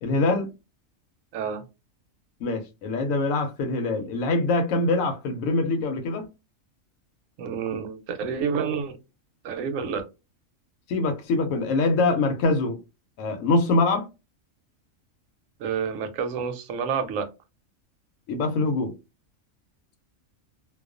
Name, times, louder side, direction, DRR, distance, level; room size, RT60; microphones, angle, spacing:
voice 1, 0.0-0.5 2.4-6.2 10.9-12.8 13.2-14.1 18.3-18.9, left 3 dB, 80° left, 1.0 m, -24 dB
voice 2, 1.3-1.6 7.4-9.0 9.4-10.0 15.6-17.3, right 6 dB, 80° right, 0.9 m, -29 dB
2.3 x 2.3 x 2.4 m
omnidirectional pair, 1.4 m